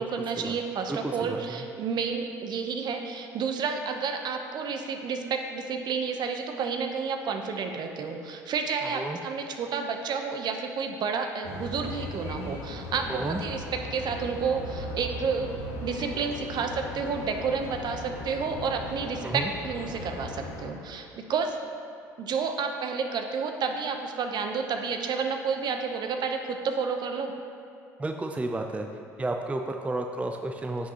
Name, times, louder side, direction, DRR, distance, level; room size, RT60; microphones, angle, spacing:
voice 1, 0.0-15.5 15.8-21.6 22.2-27.3, right 5 dB, 50° right, 5 dB, 0.8 m, -30 dB
voice 2, 0.9-1.6 8.8-9.2 13.1-13.4 19.2-19.5 28.0-28.9 29.2-30.9, right 2 dB, 15° right, 4 dB, 0.5 m, -32 dB
sound 1, 11.4-20.7, left 1 dB, 80° left, 1.4 m, -38 dB
10.0 x 6.0 x 2.9 m, 2.5 s
hypercardioid pair, 70°, 9 cm